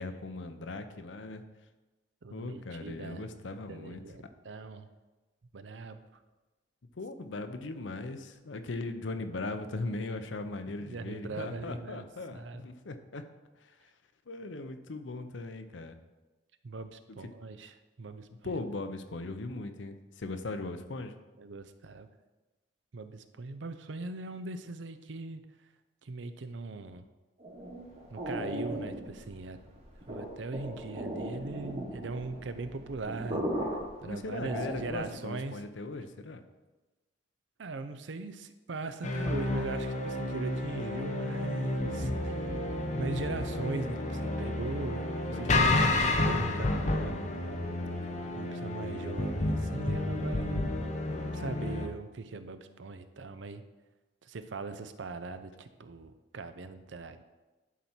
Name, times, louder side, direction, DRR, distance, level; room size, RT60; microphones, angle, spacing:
voice 1, 0.0-1.4 2.3-4.3 6.9-13.2 13.6-13.9 14.3-16.0 18.4-21.1 34.0-36.4 45.3-46.4, left 2 dB, 75° left, 8 dB, 0.7 m, -39 dB
voice 2, 2.2-3.2 3.7-4.9 5.5-6.0 10.8-12.1 12.3-12.6 16.6-18.5 21.4-22.1 22.9-25.4 26.0-27.0 28.1-29.6 30.1-33.4 34.0-35.6 37.6-42.5 43.0-45.9 46.3-47.1 48.0-48.1 48.4-50.8 51.3-53.6 54.2-57.2, right 3 dB, 70° right, 10 dB, 0.6 m, -40 dB
sound 1, 27.4-35.2, equal, 35° right, 1.4 m, -38 dB
sound 2, 39.0-51.9, left 2 dB, 35° left, 0.8 m, -31 dB
11.0 x 4.3 x 4.4 m, 1.1 s
head